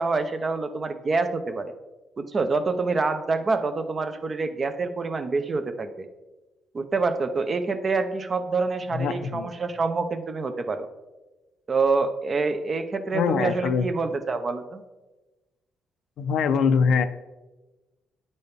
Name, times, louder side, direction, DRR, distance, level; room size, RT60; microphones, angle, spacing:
voice 1, 0.0-1.7 2.2-6.1 6.7-10.9 11.7-14.8, right 3 dB, 40° right, 8 dB, 0.6 m, -26 dB
voice 2, 8.9-9.5 13.1-13.9 16.2-17.0, left 6 dB, 75° left, 10 dB, 0.4 m, -23 dB
9.4 x 4.2 x 3.5 m, 1.1 s
cardioid pair, 90°, 0 cm